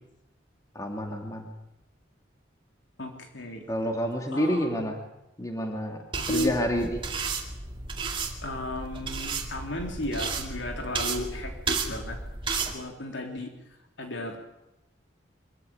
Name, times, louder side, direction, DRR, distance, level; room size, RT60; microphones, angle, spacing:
voice 1, 0.7-1.5 3.7-5.0 5.4-7.0, equal, 15° left, 3 dB, 2.4 m, -29 dB
voice 2, 3.0-3.7 4.3-4.9 6.2-6.5 8.4-12.2 12.7-13.5 14.0-14.4, left 1 dB, 75° left, 3 dB, 3.7 m, -34 dB
sound 1, 6.1-12.7, right 4 dB, 25° right, 2.3 m, -33 dB
23.5 x 14.5 x 9.0 m, 0.90 s
head